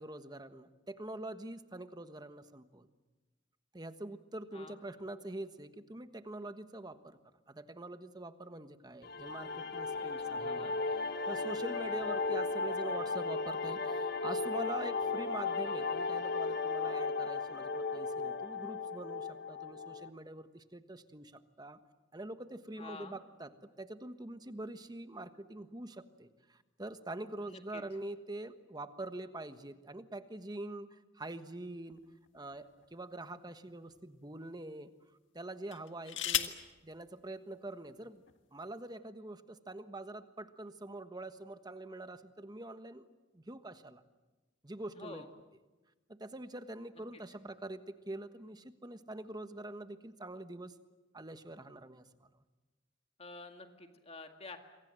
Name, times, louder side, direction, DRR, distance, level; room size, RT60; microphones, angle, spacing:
voice 1, 0.0-2.9 3.7-7.2 7.5-10.7 11.0-21.8 22.1-23.5 23.8-32.0 32.3-34.9 35.3-36.6 36.8-38.2 38.5-43.1 43.3-44.0 44.6-45.2 46.1-50.7 51.1-52.3, right 2 dB, 20° right, 10 dB, 1.3 m, -45 dB
sound 1, 9.0-20.1, left 4 dB, 60° left, 1.1 m, -35 dB
voice 2, 10.3-10.8 22.8-23.2 27.5-27.8 44.9-45.3 47.1-47.2 53.2-54.6, left 3 dB, 35° left, 5 dB, 2.0 m, -49 dB
sound 2, 31.9-33.1 33.9-34.0 35.6-36.7 37.8-37.9 38.3-38.6, left 11 dB, 85° left, 1.7 m, -37 dB
28.0 x 24.0 x 7.7 m, 1.2 s
head